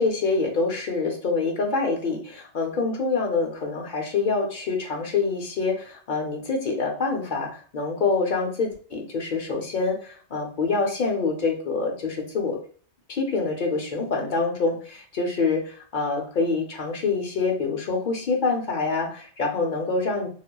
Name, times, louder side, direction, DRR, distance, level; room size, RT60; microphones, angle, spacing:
voice 1, 0.0-12.6 13.1-20.3, left 4 dB, 50° left, 3 dB, 0.8 m, -26 dB
4.0 x 2.1 x 2.2 m, 0.43 s
omnidirectional pair, 1.2 m